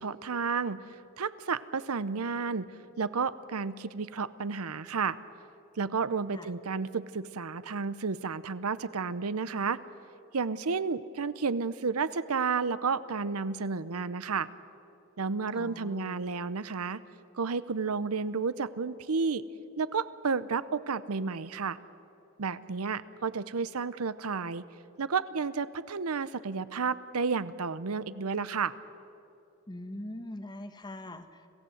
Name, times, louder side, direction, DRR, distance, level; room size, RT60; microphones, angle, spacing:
voice 1, 0.0-2.7 3.0-5.2 5.8-9.8 10.3-14.5 15.2-17.0 17.3-19.4 19.8-21.8 22.4-24.6 25.0-28.7, right 5 dB, 85° right, 16 dB, 0.7 m, -31 dB
voice 2, 15.5-16.2 29.7-31.5, left 1 dB, 20° left, 8 dB, 1.1 m, -42 dB
26.5 x 16.5 x 7.9 m, 2.7 s
head